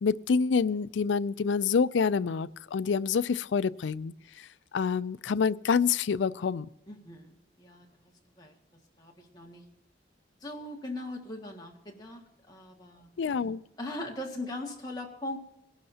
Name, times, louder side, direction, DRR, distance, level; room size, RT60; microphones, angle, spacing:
voice 1, 0.0-4.5 4.7-6.7 13.2-13.6, left 5 dB, 90° left, 17 dB, 0.4 m, -27 dB
voice 2, 6.9-8.1 8.4-8.5 9.0-9.6 10.4-12.2 12.5-13.1 13.8-15.4, left 1 dB, 20° left, -1 dB, 1.9 m, -40 dB
21.5 x 12.0 x 2.8 m, 0.84 s
head